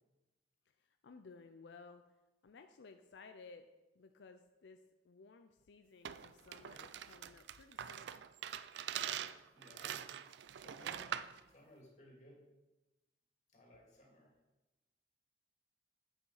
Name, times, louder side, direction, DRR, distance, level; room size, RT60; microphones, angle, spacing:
voice 1, 0.7-2.0 2.4-3.7 3.9-8.2, left 4 dB, 90° left, 7 dB, 0.5 m, -57 dB
sound 1, 6.0-11.4, right 9 dB, 80° right, 0.3 m, -44 dB
voice 2, 9.5-10.0 10.6-12.4 13.5-14.3, equal, 40° left, -2 dB, 2.4 m, -60 dB
7.9 x 6.6 x 4.8 m, 1.1 s
head